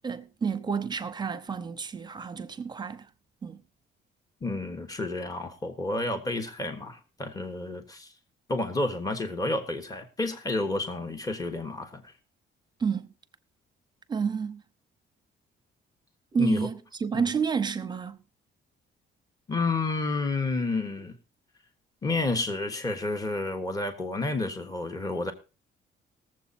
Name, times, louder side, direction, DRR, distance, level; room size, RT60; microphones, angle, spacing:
voice 1, 0.0-3.1 3.4-3.6 12.8-13.1 14.1-14.6 16.3-18.2, right 6 dB, 20° right, 0.8 m, -30 dB
voice 2, 4.4-8.1 8.5-12.1 16.4-16.7 17.1-17.2 19.5-21.1 22.0-25.3, left 2 dB, 20° left, 1.4 m, -30 dB
19.5 x 7.6 x 4.2 m
cardioid pair, 165°, 20 cm